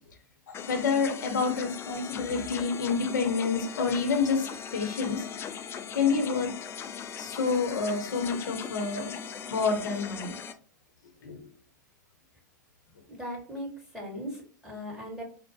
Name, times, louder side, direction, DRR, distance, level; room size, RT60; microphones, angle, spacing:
voice 1, 0.5-5.3 5.9-6.5 7.2-9.1 9.5-10.3 11.2-11.5, left 5 dB, 85° left, 4 dB, 0.8 m, -28 dB
sound 1, 0.5-10.5, left 7 dB, 25° left, 0.3 m, -39 dB
voice 2, 13.1-15.2, equal, 5° right, -1 dB, 1.7 m, -38 dB
4.5 x 2.0 x 2.7 m, 0.41 s
hypercardioid pair, 105°, 10 cm